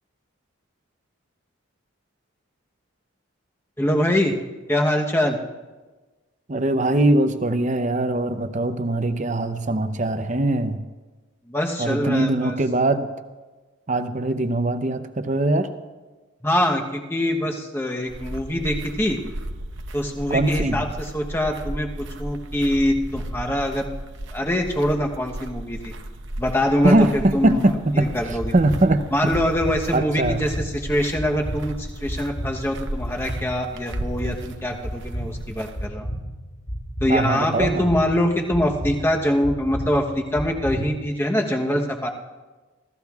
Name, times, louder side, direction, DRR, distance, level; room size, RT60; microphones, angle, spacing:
voice 1, 3.8-4.4 4.7-5.4 11.5-12.5 16.4-19.2 19.9-23.9 24.3-25.9 26.4-27.6 27.9-28.5 29.1-36.1 37.0-42.1, left 1 dB, 10° left, 2 dB, 0.9 m, -24 dB
voice 2, 6.5-10.8 11.8-13.1 13.9-15.7 20.3-20.8 26.8-29.0 29.9-30.4 37.1-37.9, right 2 dB, 35° right, 9 dB, 0.7 m, -21 dB
sound 1, 18.1-35.9, right 1 dB, 60° right, 0.9 m, -35 dB
sound 2, 28.4-41.1, equal, 55° left, 5.2 m, -33 dB
26.5 x 15.0 x 2.4 m, 1.3 s
head